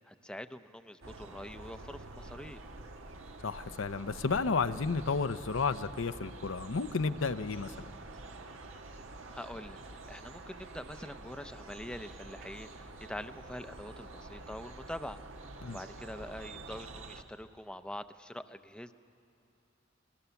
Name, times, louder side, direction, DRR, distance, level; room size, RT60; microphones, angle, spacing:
voice 1, 0.1-2.6 8.9-9.0 9.3-9.8 10.1-18.9, left 1 dB, 5° left, 9 dB, 0.6 m, -45 dB
sound 1, 1.0-17.2, right 2 dB, 85° right, 1.5 m, -48 dB
voice 2, 3.4-7.9 15.6-15.8, left 4 dB, 80° left, 11 dB, 0.7 m, -32 dB
27.0 x 20.5 x 7.0 m, 2.8 s
head